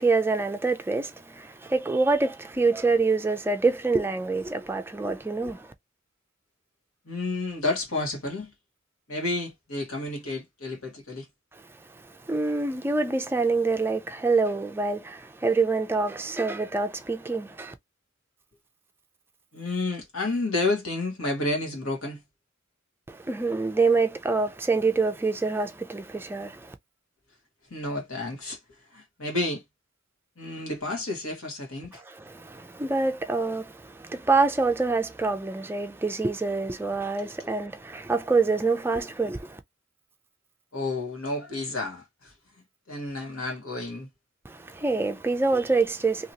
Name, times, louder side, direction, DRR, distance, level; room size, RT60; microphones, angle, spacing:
voice 1, 0.0-5.7 12.3-17.7 23.1-26.7 32.1-39.6 44.5-46.3, right 3 dB, 10° right, 0.3 m, -26 dB
voice 2, 7.0-8.5 9.1-11.3 19.5-22.2 27.7-28.6 28.9-29.6 30.4-32.0 37.2-37.5 40.7-42.3 42.9-44.1, left 2 dB, 90° left, 1.6 m, -30 dB
2.9 x 2.8 x 2.7 m
head